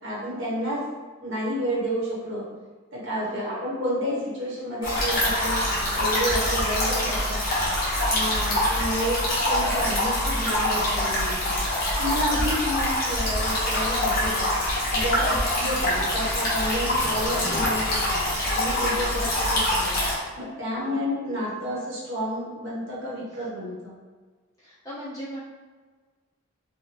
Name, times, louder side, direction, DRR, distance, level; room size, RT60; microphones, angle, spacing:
voice 1, 0.0-0.8 1.2-2.4 2.9-5.6 5.9-7.4 8.1-9.2 9.5-18.2 18.5-23.9, equal, 60° right, -5 dB, 1.1 m, -30 dB
voice 2, 3.3-3.6 8.3-8.6 15.1-15.4 19.0-19.2 20.8-21.1 24.6-25.4, equal, 15° left, -10 dB, 1.1 m, -40 dB
sound 1, 4.8-20.1, left 1 dB, 45° left, 1.1 m, -25 dB
4.7 x 2.2 x 3.0 m, 1.4 s
head